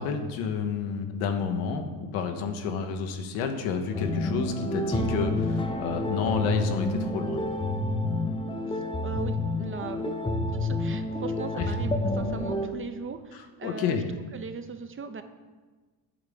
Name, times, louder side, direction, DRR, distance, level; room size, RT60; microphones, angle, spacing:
voice 1, 0.0-7.4 13.6-14.0, left 6 dB, 90° left, 6 dB, 1.0 m, -30 dB
sound 1, 3.9-12.7, left 1 dB, 10° left, 0.7 m, -29 dB
voice 2, 8.7-10.2 10.5-14.0 14.3-15.2, right 5 dB, 25° right, 9 dB, 0.6 m, -39 dB
8.9 x 3.5 x 6.8 m, 1.3 s
supercardioid pair, 90°, 48 cm